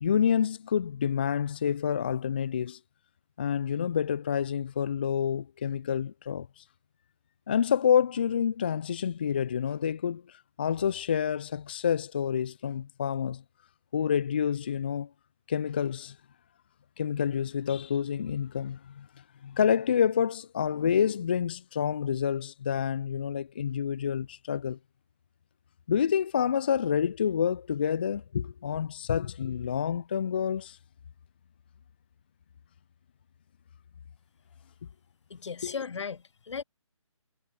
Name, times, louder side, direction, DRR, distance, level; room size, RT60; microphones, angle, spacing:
voice 1, 0.0-2.8 3.4-6.6 7.5-13.4 13.9-15.1 15.5-16.2 17.0-19.1 19.4-24.8 25.9-30.8 35.6-35.8, left 8 dB, 20° left, 0.3 m, -28 dB
voice 2, 35.3-36.6, left 6 dB, 60° left, 0.7 m, -36 dB
figure-of-eight pair, 150°, 17 cm